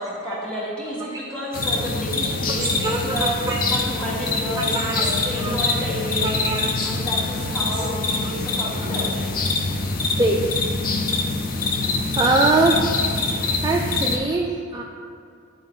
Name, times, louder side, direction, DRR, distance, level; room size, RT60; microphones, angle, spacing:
voice 1, 0.0-6.4 6.8-9.3, equal, 5° left, -6 dB, 1.4 m, -30 dB
sound 1, 1.5-14.2, left 3 dB, 45° left, 0.5 m, -24 dB
voice 2, 2.6-3.6 4.5-5.6 6.2-6.7 10.2-10.5 12.2-12.8 13.6-14.8, right 2 dB, 20° right, -1 dB, 0.3 m, -23 dB
9.4 x 3.5 x 3.6 m, 2.4 s
head